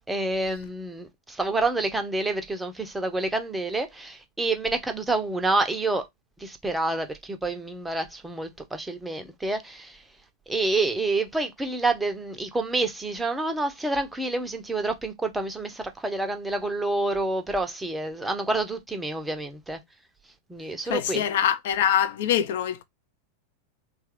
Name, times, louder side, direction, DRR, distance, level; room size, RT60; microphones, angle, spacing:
voice 1, 0.1-6.0 6.4-10.0 10.5-19.8 20.5-21.2, right 2 dB, 5° right, 0.6 m, -28 dB
voice 2, 20.9-22.8, left 10 dB, 55° left, 0.5 m, -24 dB
3.1 x 2.3 x 3.1 m
figure-of-eight pair, 90°, 0 cm